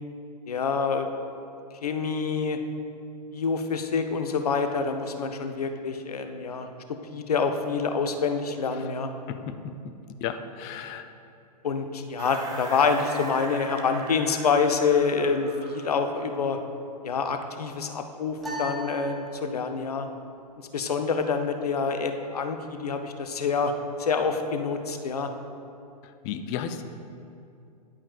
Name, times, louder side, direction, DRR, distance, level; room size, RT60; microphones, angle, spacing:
voice 1, 0.5-1.1 1.8-2.6 3.3-9.1 11.6-16.6 17.0-20.1 20.7-23.7 24.0-25.3, left 5 dB, 65° left, 6 dB, 0.7 m, -27 dB
voice 2, 9.3-9.9 10.2-11.1 26.0-26.8, left 8 dB, 25° left, 10 dB, 0.4 m, -34 dB
sound 1, 12.2-16.6, right 2 dB, 15° right, 0.9 m, -41 dB
sound 2, 18.4-19.9, equal, ahead, 1.3 m, -37 dB
10.5 x 8.6 x 2.3 m, 2.5 s
figure-of-eight pair, 105°, 21 cm